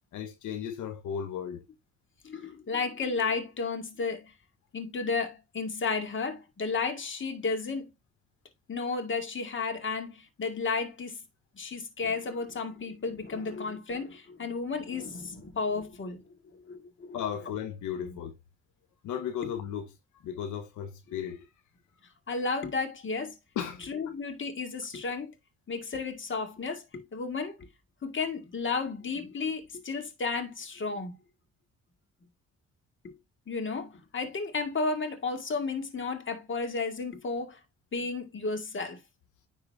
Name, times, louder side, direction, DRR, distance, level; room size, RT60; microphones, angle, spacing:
voice 1, 0.1-1.7 17.1-18.3 19.0-21.5 23.6-24.1, left 8 dB, 80° left, 0.9 m, -35 dB
voice 2, 2.2-4.2 4.7-7.9 8.7-11.2 11.6-16.2 16.5-17.2 22.3-23.3 23.9-25.3 25.7-27.7 28.0-31.2 33.0-33.2 33.5-37.6 37.9-39.0, left 4 dB, 40° left, 2.1 m, -33 dB
10.0 x 3.8 x 3.5 m
cardioid pair, 90°, 30 cm